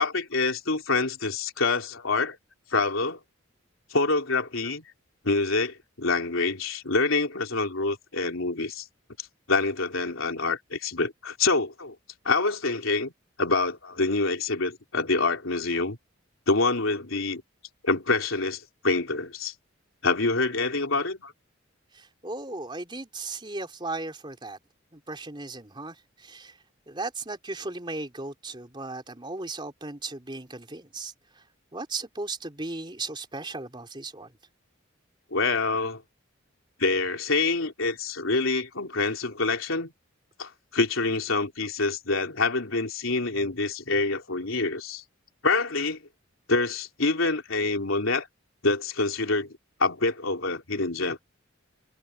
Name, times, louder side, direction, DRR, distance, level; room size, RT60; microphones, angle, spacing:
voice 1, 0.0-2.4 2.7-3.2 3.9-4.8 5.2-8.9 9.2-12.0 12.3-13.1 13.4-16.0 16.5-17.4 17.8-19.5 20.0-21.3 35.3-36.0 36.8-39.9 40.4-45.0 45.4-46.0 46.5-48.3 48.6-51.2, left 3 dB, 90° left, 3.4 m, -26 dB
voice 2, 21.9-24.6 24.9-26.5 26.9-31.1 31.7-34.3, right 3 dB, 25° right, 3.9 m, -36 dB
head